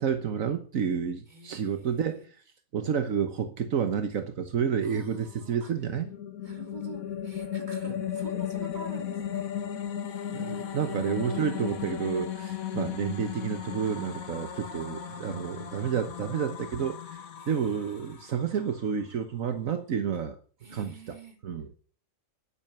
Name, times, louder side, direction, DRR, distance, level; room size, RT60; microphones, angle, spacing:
voice 1, 0.0-2.4 2.7-6.1 10.3-20.4 20.7-21.2 21.4-21.7, right 7 dB, 75° right, 1.5 m, -30 dB
voice 2, 1.3-2.3 4.8-5.7 6.4-11.5 17.4-18.4 20.6-21.4, right 3 dB, 35° right, 3.2 m, -48 dB
sound 1, 5.6-18.9, left 9 dB, 90° left, 1.8 m, -36 dB
11.0 x 10.5 x 6.9 m
omnidirectional pair, 1.4 m